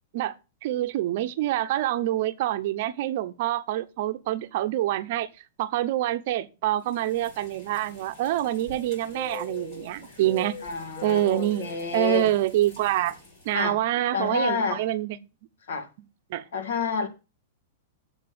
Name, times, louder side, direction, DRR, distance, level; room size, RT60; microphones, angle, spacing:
voice 1, 0.6-5.3 5.6-10.6 11.0-13.2 13.4-15.2 16.3-16.5, right 14 dB, 45° right, 0.7 m, -26 dB
sound 1, 6.9-13.5, left 5 dB, 35° left, 5.2 m, -43 dB
voice 2, 10.6-12.3 13.5-13.8 14.1-14.8 15.7-15.9 16.5-17.1, left 5 dB, 85° left, 2.0 m, -29 dB
7.7 x 5.9 x 6.7 m
supercardioid pair, 170°, 0 cm